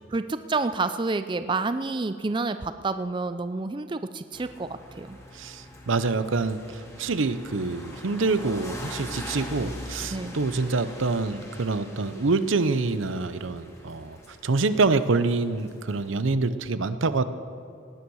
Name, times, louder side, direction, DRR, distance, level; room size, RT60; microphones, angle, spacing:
voice 1, 0.1-5.2 10.1-10.3, right 3 dB, 25° right, 11 dB, 0.4 m, -29 dB
sound 1, 4.3-16.2, left 1 dB, 15° left, 1.9 m, -42 dB
voice 2, 5.3-17.2, right 3 dB, 85° right, 12 dB, 0.7 m, -26 dB
18.0 x 9.9 x 6.3 m, 2.6 s
head